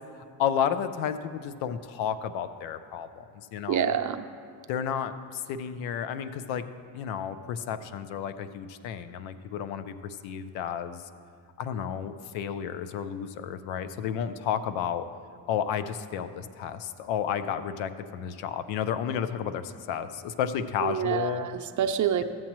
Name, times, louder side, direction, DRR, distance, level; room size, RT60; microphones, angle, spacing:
voice 1, 0.4-4.0 4.7-6.6 6.9-11.0 11.6-15.1 15.5-21.5, left 8 dB, 80° left, 11 dB, 0.6 m, -32 dB
voice 2, 3.7-4.2 20.8-22.2, right 9 dB, 40° right, 7 dB, 0.6 m, -27 dB
14.0 x 7.4 x 3.0 m, 2.3 s
supercardioid pair, 80°, 45 cm